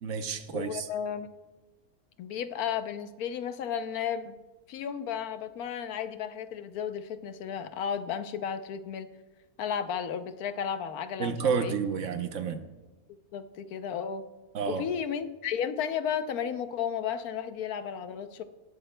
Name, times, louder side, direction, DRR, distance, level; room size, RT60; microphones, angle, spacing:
voice 1, 0.0-0.9 11.2-12.6 14.5-14.8, right 6 dB, 60° right, 8 dB, 1.1 m, -30 dB
voice 2, 0.5-1.3 2.2-4.4 4.7-9.1 9.6-11.8 13.3-14.3 14.7-18.4, left 8 dB, 75° left, 10 dB, 1.1 m, -33 dB
19.5 x 11.0 x 2.2 m, 1.2 s
omnidirectional pair, 1.6 m